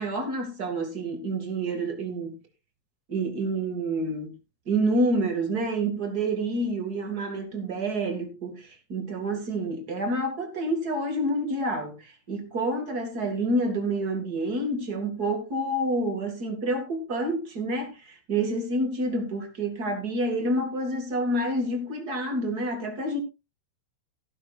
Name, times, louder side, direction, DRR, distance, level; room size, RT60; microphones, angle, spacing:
voice 1, 0.0-2.3 3.1-4.4 4.7-23.2, right 1 dB, 30° right, 2.0 m, -28 dB
15.0 x 12.0 x 2.5 m
omnidirectional pair, 4.6 m